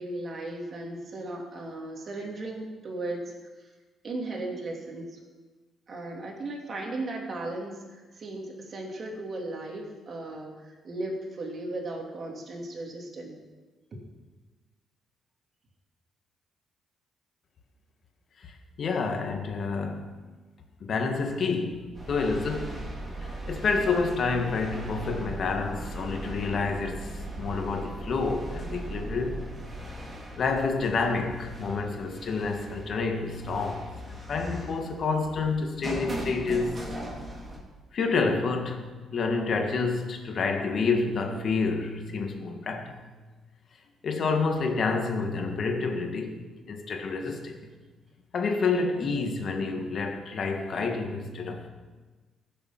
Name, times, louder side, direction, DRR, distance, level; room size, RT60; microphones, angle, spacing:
voice 1, 0.0-3.7 4.0-5.2 5.9-13.4, right 2 dB, 45° right, 2.8 m, -36 dB
voice 2, 18.8-20.1 20.8-22.9 23.2-29.5 30.4-36.8 37.9-38.8 39.1-42.9 44.0-46.4 46.7-47.7 48.3-51.7, left 4 dB, 55° left, 1.8 m, -29 dB
sound 1, 21.9-37.6, right 1 dB, 25° right, 3.2 m, -38 dB
15.5 x 7.1 x 5.9 m
cardioid pair, 90°, 0 cm